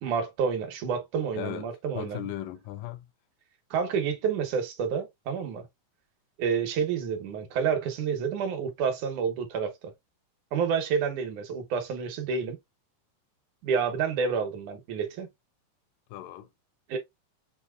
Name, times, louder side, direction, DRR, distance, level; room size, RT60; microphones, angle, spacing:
voice 1, 0.0-2.3 3.7-5.7 6.4-9.9 10.5-12.6 13.6-15.3 16.9-17.0, right 6 dB, 70° right, 2.3 m, -29 dB
voice 2, 1.3-3.1 16.1-16.5, left 12 dB, 85° left, 2.2 m, -37 dB
6.2 x 2.8 x 2.3 m
omnidirectional pair, 3.8 m